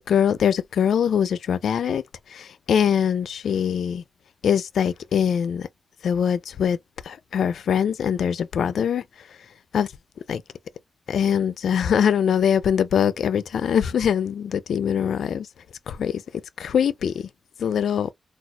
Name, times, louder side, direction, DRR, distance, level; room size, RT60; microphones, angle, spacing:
voice 1, 0.1-2.0 2.3-4.0 4.4-5.7 6.0-6.8 7.1-9.0 9.7-9.9 10.3-10.4 11.1-15.5 15.9-16.2 16.6-17.3 17.6-18.1, left 8 dB, 90° left, 0.3 m, -22 dB
4.1 x 2.3 x 2.2 m
wide cardioid pair, 105°, 0 cm